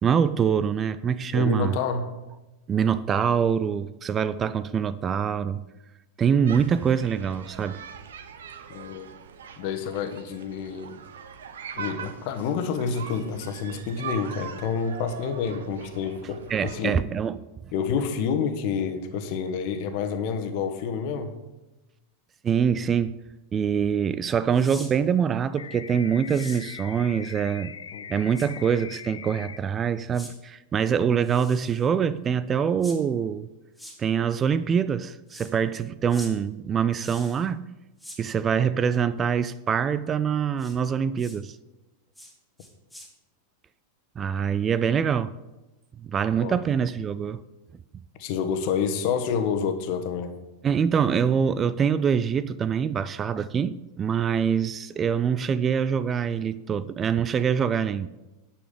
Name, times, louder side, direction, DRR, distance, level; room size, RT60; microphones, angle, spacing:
voice 1, 0.0-1.8 2.7-5.6 6.2-7.8 16.5-17.4 22.4-23.1 23.5-27.7 28.1-33.5 34.0-37.6 38.2-41.6 44.2-45.3 46.0-47.4 50.6-58.1, right 7 dB, 25° right, 0.4 m, -24 dB
voice 2, 1.3-2.1 8.7-9.1 9.6-11.0 11.7-17.0 17.7-21.3 27.9-28.0 46.4-46.5 48.2-50.3, left 6 dB, 50° left, 1.3 m, -28 dB
sound 1, 6.5-16.8, right 7 dB, 65° right, 0.8 m, -41 dB
sound 2, 24.5-24.9 26.3-26.6 28.3-28.5 30.1-30.3 31.2-31.9 32.8-33.0 33.7-33.9 35.3-35.5 36.1-36.3 36.9-37.4 38.0-38.2 40.6-40.7 41.2-41.4 42.1-42.3 42.6-43.1, equal, 5° right, 2.4 m, -44 dB
sound 3, 25.6-29.6, left 7 dB, 70° left, 0.5 m, -41 dB
9.9 x 6.9 x 5.3 m
figure-of-eight pair, 90°, 0 cm